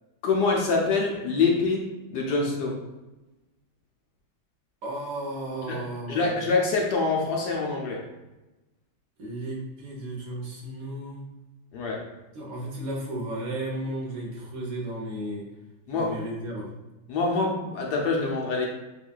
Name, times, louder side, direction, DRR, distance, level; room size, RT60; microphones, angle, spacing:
voice 1, 0.2-2.8 5.7-8.0 11.7-12.1 15.9-16.2 17.1-18.7, left 4 dB, 65° left, -1 dB, 1.0 m, -25 dB
voice 2, 4.8-6.3 9.2-11.2 12.3-15.4 15.9-16.7, right 1 dB, 50° right, -2 dB, 1.2 m, -34 dB
7.2 x 2.6 x 2.3 m, 1.1 s
omnidirectional pair, 2.3 m